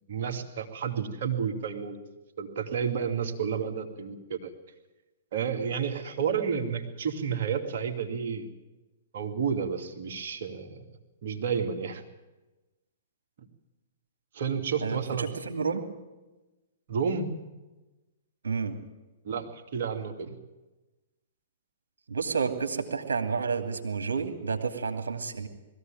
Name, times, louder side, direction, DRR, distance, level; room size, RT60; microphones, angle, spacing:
voice 1, 0.1-2.0 2.4-4.5 5.3-8.5 9.1-10.8 11.2-12.0 14.3-15.3 16.9-17.3 19.2-20.4, right 6 dB, 50° right, 3 dB, 2.6 m, -31 dB
voice 2, 14.8-15.8 18.4-18.8 22.1-25.5, right 5 dB, 65° right, 7 dB, 2.6 m, -30 dB
21.0 x 15.0 x 9.0 m, 1.1 s
figure-of-eight pair, 115°, 0 cm